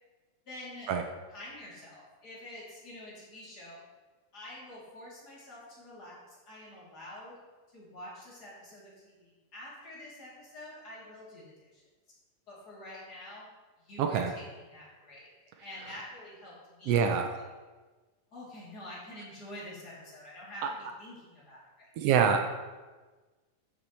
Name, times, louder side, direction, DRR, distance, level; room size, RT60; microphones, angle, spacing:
voice 1, 0.5-0.9 1.3-3.8 4.3-7.3 7.7-11.8 12.5-13.4 13.8-15.3 15.6-17.0 17.3-17.5 18.3-21.9, left 1 dB, 30° left, -7 dB, 3.4 m, -47 dB
voice 2, 14.0-14.3 16.9-17.3 20.6-20.7 22.0-22.5, right 7 dB, 90° right, 5 dB, 1.3 m, -25 dB
13.0 x 6.9 x 3.2 m, 1.3 s
omnidirectional pair, 3.6 m